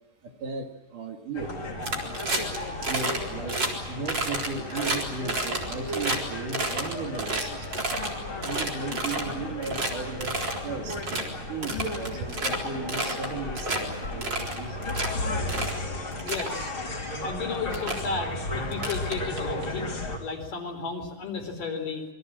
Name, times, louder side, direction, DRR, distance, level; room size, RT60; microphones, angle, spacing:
voice 1, 0.2-1.6 2.9-3.6 3.9-7.9 8.4-11.2 11.5-14.9, right 4 dB, 65° right, 4 dB, 3.7 m, -36 dB
sound 1, 1.3-20.2, left 1 dB, 35° left, 4.3 m, -34 dB
sound 2, 1.8-2.6 2.8-3.2 3.5-3.7 4.1-6.2 6.5-8.1 8.4-9.3 9.6-9.9 10.2-10.6 10.9-11.2 11.6-12.6 12.9-13.3 13.6-13.8 14.2-15.1 15.5-15.8 16.1-16.5 17.3-17.4 17.7-18.0 18.7-19.6, right 2 dB, 30° right, 4.4 m, -30 dB
voice 2, 16.3-16.7 17.2-19.9 20.2-22.0, left 4 dB, 65° left, 4 dB, 5.6 m, -33 dB
27.5 x 23.0 x 7.7 m, 1.1 s
omnidirectional pair, 4.1 m